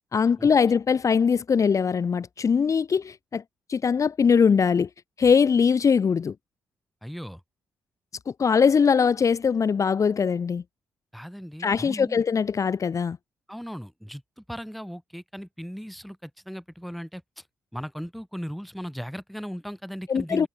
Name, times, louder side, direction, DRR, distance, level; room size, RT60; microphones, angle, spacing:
voice 1, 0.1-3.4 3.7-4.9 5.2-6.3 8.3-10.6 11.6-13.2 20.1-20.5, left 6 dB, 45° left, 1.0 m, -21 dB
voice 2, 7.0-7.4 11.1-12.2 13.5-17.4 17.7-20.5, equal, ahead, 4.0 m, -37 dB
supercardioid pair, 55°, 7 cm